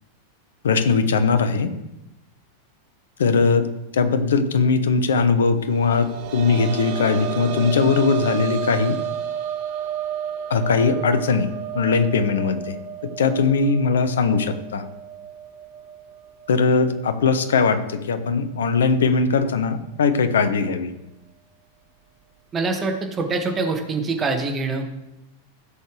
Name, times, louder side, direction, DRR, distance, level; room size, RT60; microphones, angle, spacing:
voice 1, 0.6-1.7 3.2-3.7 3.9-9.0 10.5-11.5 11.7-12.8 13.2-14.8 16.5-20.9, left 5 dB, 65° left, 10 dB, 1.0 m, -20 dB
sound 1, 5.7-17.2 17.5-17.6 19.1-19.2, right 9 dB, 45° right, 1.0 m, -32 dB
voice 2, 22.5-24.9, right 3 dB, 20° right, 3 dB, 1.9 m, -24 dB
16.0 x 6.6 x 3.3 m, 0.92 s
figure-of-eight pair, 90°, 0 cm